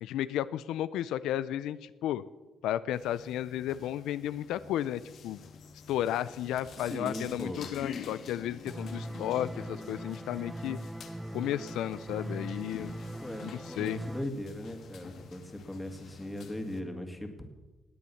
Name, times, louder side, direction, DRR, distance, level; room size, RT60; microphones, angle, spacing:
voice 1, 0.0-2.2 2.6-5.4 5.9-10.8 11.3-12.9 13.4-14.1, left 12 dB, 90° left, 15 dB, 0.4 m, -33 dB
sound 1, 2.9-16.8, left 6 dB, 65° left, 1.5 m, -48 dB
voice 2, 6.8-7.6 13.2-17.4, left 1 dB, 10° left, 5 dB, 2.2 m, -39 dB
sound 2, 8.7-14.2, right 1 dB, 10° right, 0.5 m, -40 dB
18.5 x 8.4 x 7.1 m, 1.2 s
cardioid pair, 90°, 0 cm